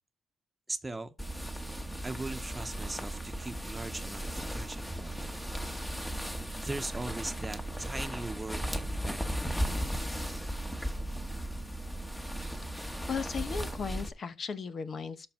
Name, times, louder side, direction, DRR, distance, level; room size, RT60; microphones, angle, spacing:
voice 1, 0.7-1.1 2.0-5.2 6.5-9.9, right 2 dB, 15° right, 1.2 m, -40 dB
sound 1, 1.2-14.1, equal, 10° left, 1.5 m, -36 dB
voice 2, 13.1-15.3, left 6 dB, 50° left, 1.1 m, -36 dB
12.5 x 5.3 x 4.6 m
cardioid pair, 90°, 0 cm